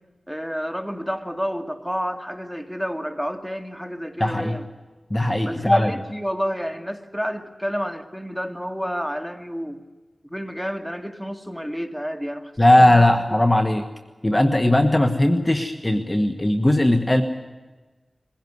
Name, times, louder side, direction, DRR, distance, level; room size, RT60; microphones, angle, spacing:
voice 1, 0.3-4.7 5.4-9.8 10.2-12.5 12.8-13.4, equal, ahead, 6 dB, 2.2 m, -30 dB
voice 2, 4.2-4.6 5.1-5.9 12.6-13.8 14.2-17.2, left 1 dB, 20° left, 7 dB, 1.4 m, -18 dB
22.0 x 16.5 x 9.6 m, 1.3 s
wide cardioid pair, 50°, 0 cm